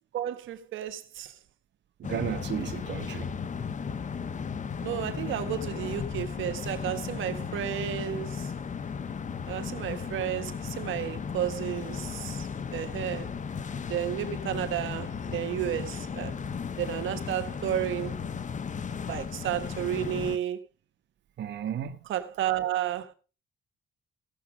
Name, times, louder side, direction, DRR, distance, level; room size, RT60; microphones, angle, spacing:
voice 1, 0.1-1.3 4.8-8.5 9.5-13.3 13.9-16.3 16.8-18.2 19.1-20.6 22.1-23.1, right 11 dB, 80° right, 1.4 m, -32 dB
sound 1, 2.0-20.4, left 6 dB, 40° left, 0.9 m, -35 dB
voice 2, 2.0-3.3 21.4-22.0, right 9 dB, 65° right, 1.3 m, -34 dB
16.5 x 7.2 x 4.9 m
cardioid pair, 90°, 20 cm